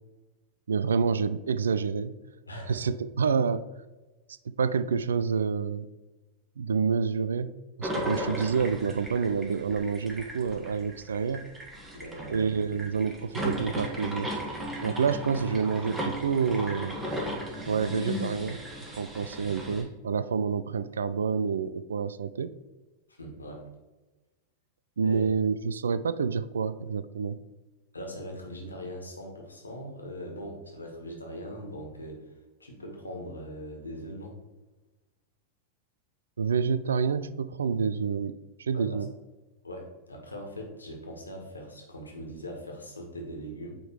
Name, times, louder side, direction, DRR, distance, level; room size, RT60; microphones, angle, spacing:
voice 1, 0.7-2.1 2.7-3.6 4.5-5.9 6.6-7.5 7.8-11.4 12.3-14.3 14.8-17.0 17.7-18.6 18.9-22.5 25.0-27.4 36.4-39.1, right 6 dB, 70° right, 15 dB, 0.4 m, -28 dB
voice 2, 2.5-2.9 11.9-12.5 23.1-23.6 25.0-25.2 27.9-32.3 32.6-34.4 38.7-39.0 39.6-43.7, equal, 80° left, 1 dB, 1.7 m, -41 dB
sound 1, 7.8-19.8, equal, 15° right, 1.7 m, -36 dB
9.0 x 3.8 x 4.7 m, 1.1 s
figure-of-eight pair, 90°, 0 cm